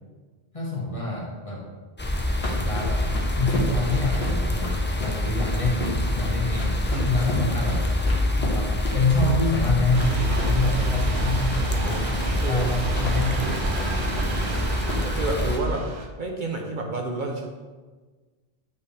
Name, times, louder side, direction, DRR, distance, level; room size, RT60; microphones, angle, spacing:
voice 1, 0.5-1.6 2.6-5.9 6.1-6.8 7.1-7.8 8.4-14.5, left 2 dB, 35° left, -3 dB, 1.4 m, -27 dB
sound 1, 2.0-15.6, left 1 dB, 15° left, 0.4 m, -26 dB
sound 2, 2.4-15.4, left 2 dB, 75° left, 1.5 m, -36 dB
sound 3, 9.9-16.1, right 4 dB, 85° right, 1.0 m, -33 dB
voice 2, 11.7-12.1 12.4-12.7 14.4-14.6 15.0-15.9 16.2-17.5, right 2 dB, 50° right, 1 dB, 0.9 m, -30 dB
8.2 x 5.1 x 3.3 m, 1.4 s
omnidirectional pair, 1.1 m